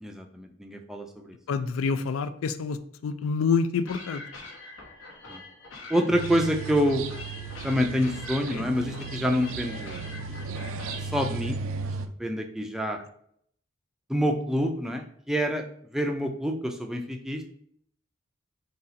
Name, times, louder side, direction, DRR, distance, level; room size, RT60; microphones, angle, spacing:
voice 1, 0.0-1.4 5.3-5.4 5.9-7.0 7.6-10.0 11.0-11.6 12.2-13.0 14.1-15.6 15.9-17.4, equal, ahead, 3 dB, 0.4 m, -27 dB
voice 2, 1.5-4.2 8.5-8.6, left 5 dB, 90° left, 11 dB, 0.3 m, -27 dB
sound 1, 3.9-11.3, left 2 dB, 70° left, 0.9 m, -44 dB
sound 2, 6.1-12.1, right 4 dB, 75° right, 0.4 m, -36 dB
4.0 x 2.4 x 3.9 m, 0.66 s
head